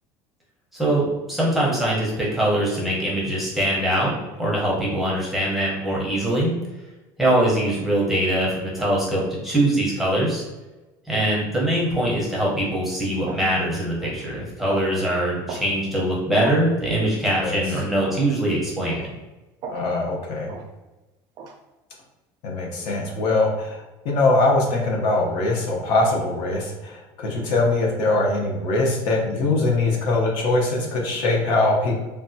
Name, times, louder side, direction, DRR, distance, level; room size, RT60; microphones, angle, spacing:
voice 1, 0.7-6.6 7.2-10.4 11.1-19.0, right 1 dB, ahead, -5 dB, 0.7 m, -22 dB
sound 1, 12.5-12.7 13.2-13.5 14.0-14.2 14.7-14.9 15.5-15.7 16.4-16.6 17.2-17.4 18.0-18.3 18.9-19.1 19.6-19.9 20.5-20.7 21.4-21.6, right 5 dB, 45° right, 0.4 m, -36 dB
voice 2, 19.7-20.5 22.4-32.0, left 2 dB, 60° left, 0 dB, 0.7 m, -22 dB
3.2 x 2.2 x 2.6 m, 1.1 s
cardioid pair, 170°, 9 cm